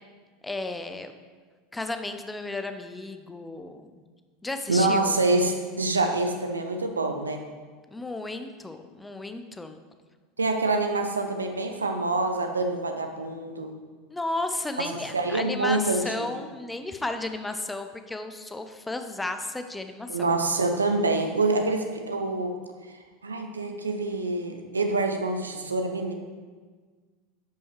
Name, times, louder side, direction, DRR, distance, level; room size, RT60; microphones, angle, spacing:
voice 1, 0.4-1.1 1.7-4.0 4.4-5.2 7.9-9.8 14.1-20.3, left 2 dB, 10° left, 7 dB, 0.6 m, -33 dB
voice 2, 4.7-7.4 10.4-13.7 15.1-16.3 20.1-22.5 23.2-26.1, right 2 dB, 85° right, 4 dB, 0.7 m, -26 dB
10.0 x 5.4 x 3.2 m, 1.5 s
figure-of-eight pair, 80°, 0 cm